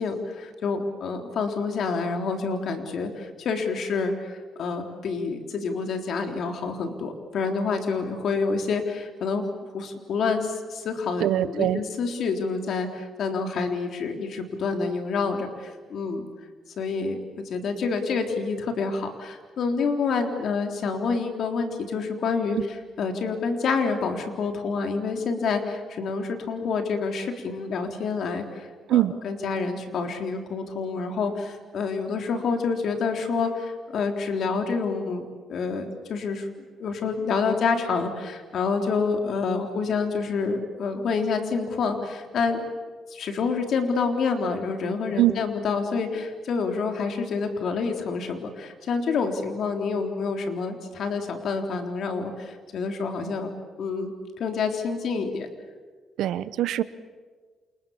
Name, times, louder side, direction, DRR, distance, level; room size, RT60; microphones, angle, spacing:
voice 1, 0.0-9.5 9.7-16.3 16.8-17.2 17.5-22.6 23.0-36.5 36.8-42.7 43.1-53.5 53.8-55.5, left 4 dB, 65° left, 4 dB, 3.7 m, -28 dB
voice 2, 11.2-11.8 22.5-22.6 28.9-29.1 45.2-45.3 56.2-56.8, right 13 dB, 80° right, 15 dB, 1.0 m, -22 dB
29.0 x 28.0 x 7.3 m, 1.5 s
cardioid pair, 90°, 0 cm